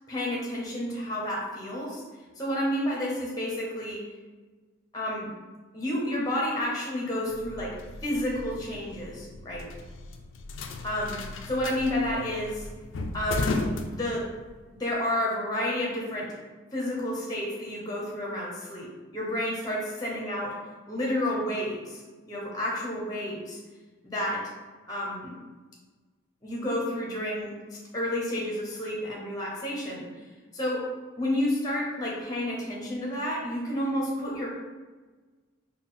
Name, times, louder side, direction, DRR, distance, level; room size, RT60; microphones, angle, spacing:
voice 1, 0.1-2.0 2.4-4.0 4.9-5.3 5.7-7.8 8.0-9.7 10.8-11.2 11.5-12.7 13.1-14.2 14.8-16.3 16.7-20.5 20.9-23.6 24.0-24.4 24.9-25.3 26.4-30.1 30.5-30.8 31.2-34.5, left 1 dB, 20° left, -3 dB, 0.6 m, -30 dB
sound 1, 7.3-14.6, left 2 dB, 65° left, 0.3 m, -35 dB
4.1 x 2.2 x 3.7 m, 1.3 s
head